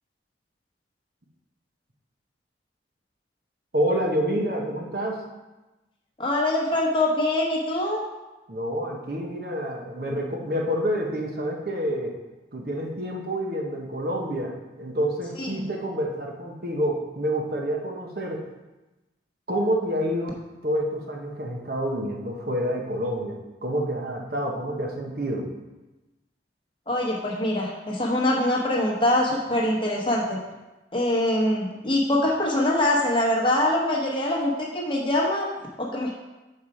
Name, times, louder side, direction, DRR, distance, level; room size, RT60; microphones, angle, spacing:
voice 1, 3.7-5.2 8.5-12.1 12.5-18.4 19.5-20.4 20.6-25.5, equal, 55° right, 0 dB, 1.1 m, -28 dB
voice 2, 6.2-8.0 15.4-15.6 26.9-30.4 30.9-35.5 35.8-36.1, left 1 dB, 25° left, -2 dB, 1.1 m, -24 dB
7.3 x 4.7 x 4.8 m, 1.1 s
head